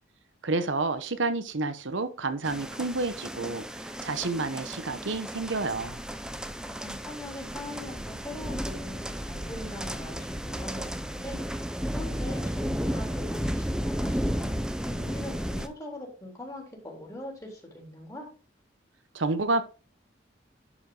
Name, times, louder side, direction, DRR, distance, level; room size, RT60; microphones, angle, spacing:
voice 1, 0.4-6.0 19.1-19.6, right 3 dB, 85° right, 0.9 m, -29 dB
sound 1, 2.4-15.7, equal, 5° right, 0.6 m, -33 dB
voice 2, 6.7-18.3, left 1 dB, 20° left, 3.5 m, -42 dB
11.0 x 5.2 x 3.9 m
head